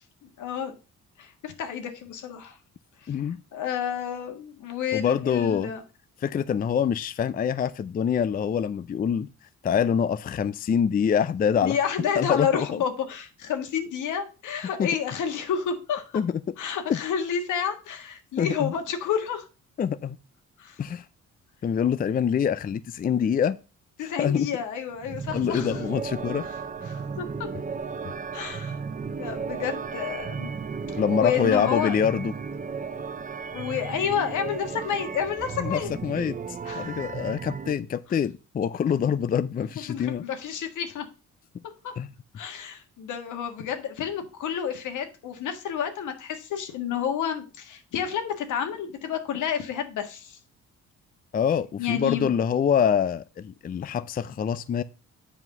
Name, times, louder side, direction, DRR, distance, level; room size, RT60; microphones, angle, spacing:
voice 1, 0.4-0.7 1.2-2.6 3.0-3.1 3.5-5.8 11.6-16.2 16.6-19.4 20.6-20.8 24.0-25.8 26.8-27.5 28.3-28.8 29.2-30.5 31.2-32.0 33.5-35.9 36.6-36.9 39.8-41.0 41.8-41.9 42.3-50.4 51.8-52.3, left 8 dB, 80° left, 1.6 m, -30 dB
voice 2, 3.1-3.4 4.9-5.7 6.2-9.3 9.6-11.8 12.2-12.8 14.8-14.9 16.1-16.4 16.9-17.0 18.4-18.7 19.8-20.2 20.8-21.0 21.6-23.6 24.2-24.5 25.3-26.5 31.0-32.3 35.6-36.4 36.7-40.2 42.0-42.1 51.3-54.8, left 7 dB, 30° left, 0.4 m, -25 dB
sound 1, 25.0-37.7, right 5 dB, 25° right, 0.6 m, -34 dB
7.8 x 5.0 x 5.4 m
cardioid pair, 90°, 30 cm